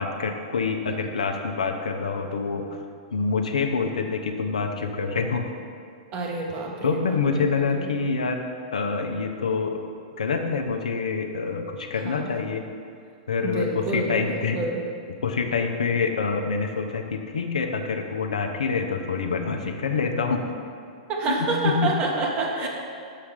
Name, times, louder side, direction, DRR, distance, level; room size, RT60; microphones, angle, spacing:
voice 1, 0.0-2.6 3.1-5.5 6.8-8.4 8.7-9.8 10.2-12.6 13.3-14.6 15.2-20.4 21.3-22.0 22.6-22.7, left 5 dB, 75° left, 4 dB, 0.7 m, -26 dB
voice 2, 6.1-7.0 7.3-7.9 12.0-12.5 13.4-14.8 21.1-22.7, right 3 dB, 35° right, -1 dB, 1.3 m, -28 dB
6.6 x 5.8 x 4.9 m, 2.4 s
hypercardioid pair, 105°, 4 cm